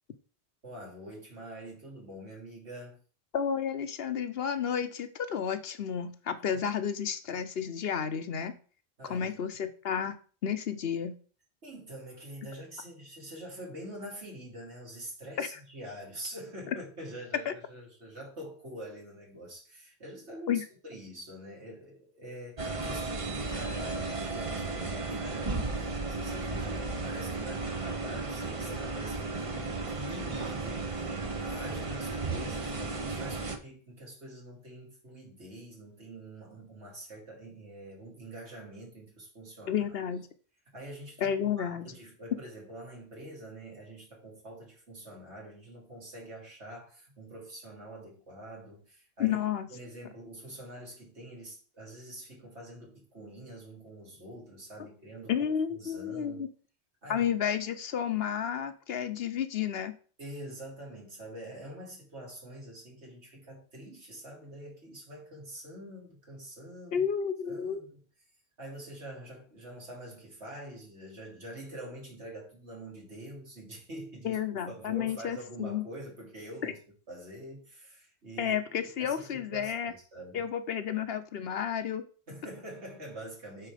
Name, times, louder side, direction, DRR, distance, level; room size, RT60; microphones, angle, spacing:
voice 1, 0.6-3.0 9.0-9.4 11.6-39.8 40.7-49.4 49.7-55.3 55.8-56.5 57.0-57.3 60.2-67.1 67.5-68.0 68.6-74.4 74.7-76.8 77.1-80.4 82.3-83.7, right 1 dB, 85° right, 3.2 m, -45 dB
voice 2, 3.3-8.5 9.0-10.1 10.4-11.2 15.4-15.6 17.5-17.6 20.5-20.6 39.7-40.3 41.2-41.9 49.2-49.6 55.3-56.5 57.1-59.9 66.9-67.8 74.2-75.8 76.6-76.7 78.4-79.9 80.3-82.0, left 8 dB, 65° left, 1.0 m, -31 dB
sound 1, 22.6-33.6, right 3 dB, 35° right, 0.9 m, -34 dB
9.0 x 4.4 x 5.0 m
omnidirectional pair, 1.1 m